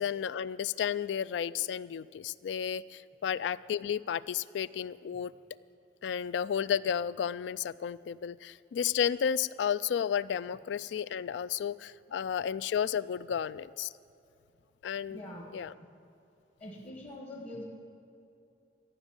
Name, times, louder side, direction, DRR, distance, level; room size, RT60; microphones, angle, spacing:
voice 1, 0.0-5.3 6.0-13.9 14.8-15.2 15.5-15.7, left 8 dB, 80° left, 18 dB, 0.3 m, -32 dB
voice 2, 15.1-15.7 16.6-17.6, left 1 dB, 35° left, 0 dB, 1.3 m, -44 dB
15.0 x 6.3 x 8.8 m, 2.7 s
head